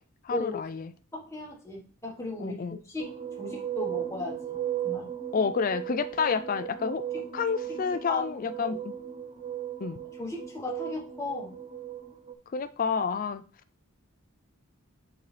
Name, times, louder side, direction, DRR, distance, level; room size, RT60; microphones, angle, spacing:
voice 1, 0.2-0.9 2.4-2.8 5.3-7.0 7.3-8.9 9.8-10.0 12.5-13.4, left 5 dB, 40° left, 12 dB, 0.3 m, -29 dB
voice 2, 1.1-4.6 4.8-5.1 7.1-7.2 7.7-7.8 8.1-8.2 8.7-8.8 10.2-11.5, left 2 dB, 15° left, -3 dB, 1.4 m, -36 dB
sound 1, 3.0-12.3, right 10 dB, 25° right, 0.6 m, -36 dB
8.1 x 4.0 x 3.3 m, 0.37 s
head